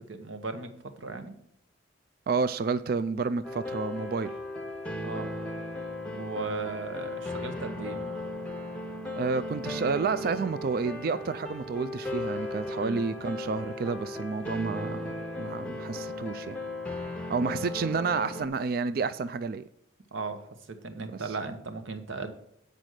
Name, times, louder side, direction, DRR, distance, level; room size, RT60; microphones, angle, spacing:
voice 1, 0.1-1.3 5.0-5.3 6.1-8.1 12.7-13.0 20.1-22.3, right 3 dB, 75° right, 1.1 m, -37 dB
voice 2, 2.3-4.3 9.1-16.6 17.3-19.6 21.0-21.1, right 4 dB, 50° right, 0.3 m, -30 dB
sound 1, 3.4-18.5, left 1 dB, 5° left, 0.8 m, -36 dB
9.0 x 5.2 x 6.4 m
head